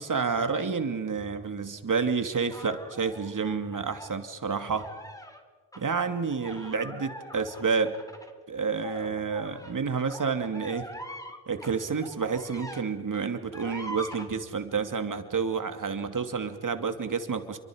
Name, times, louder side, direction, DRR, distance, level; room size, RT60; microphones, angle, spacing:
voice 1, 0.0-4.9 5.8-7.9 8.5-10.9 11.5-17.6, right 5 dB, 40° right, 8 dB, 2.5 m, -29 dB
sound 1, 2.5-4.1 4.6-5.4 5.7-5.8 6.3-12.8 13.1-14.3, equal, 5° left, 3.6 m, -43 dB
28.0 x 24.0 x 5.1 m, 1.4 s
hypercardioid pair, 45°, 48 cm